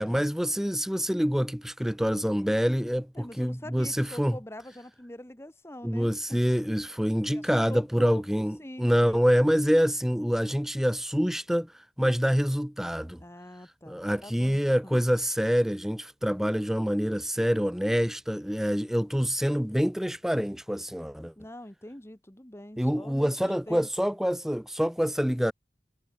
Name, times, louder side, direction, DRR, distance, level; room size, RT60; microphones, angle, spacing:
voice 1, 0.0-4.4 5.8-13.2 13.9-21.3 22.8-25.5, equal, ahead, 0.7 m, -26 dB
voice 2, 3.1-6.4 7.3-8.2 8.6-9.2 13.2-15.0 21.4-24.2, left 1 dB, 15° left, 1.4 m, -44 dB
head